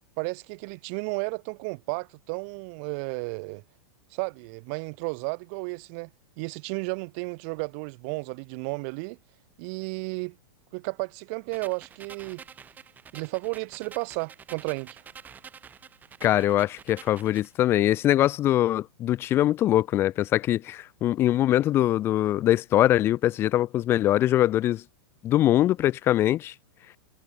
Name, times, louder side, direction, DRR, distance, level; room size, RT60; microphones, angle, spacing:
voice 1, 0.2-3.6 4.1-6.1 6.4-9.2 9.6-10.4 10.7-12.4 13.1-15.0, right 35 dB, 40° right, 1.7 m, -33 dB
sound 1, 11.5-17.5, right 7 dB, 15° right, 4.0 m, -48 dB
voice 2, 16.2-24.8 25.2-26.5, left 13 dB, 20° left, 0.5 m, -22 dB
supercardioid pair, 165°, 12 cm